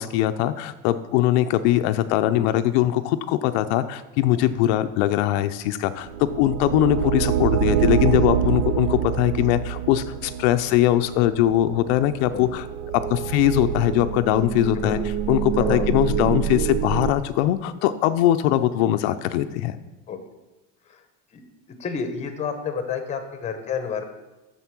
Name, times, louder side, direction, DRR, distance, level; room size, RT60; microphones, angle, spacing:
voice 1, 0.0-12.7 13.1-19.8, left 13 dB, 70° left, 10 dB, 0.6 m, -21 dB
sound 1, 6.0-17.1, right 9 dB, 75° right, 0.8 m, -26 dB
voice 2, 14.7-15.1 15.6-15.9 20.1-20.2 21.3-21.4 21.8-24.1, left 6 dB, 20° left, 8 dB, 0.8 m, -30 dB
8.0 x 6.9 x 6.0 m, 1.1 s
cardioid pair, 175°, 34 cm